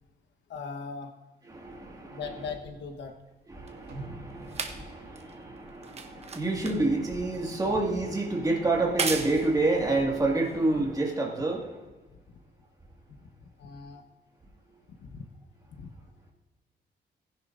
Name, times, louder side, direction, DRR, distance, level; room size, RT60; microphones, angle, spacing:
voice 1, 0.5-1.1 2.1-3.1 6.4-6.5 12.3-12.4 13.6-14.0 15.0-15.2 15.7-15.9, left 5 dB, 80° left, 5 dB, 1.3 m, -39 dB
voice 2, 1.5-2.2 3.5-11.7, right 2 dB, 20° right, -1 dB, 2.0 m, -28 dB
sound 1, 2.6-11.3 12.1-12.2, right 5 dB, 35° right, 1.0 m, -39 dB
sound 2, 3.9-6.0 6.4-6.5, right 2 dB, 80° right, 3.8 m, -46 dB
19.0 x 10.0 x 2.6 m, 1.2 s
cardioid pair, 145°, 18 cm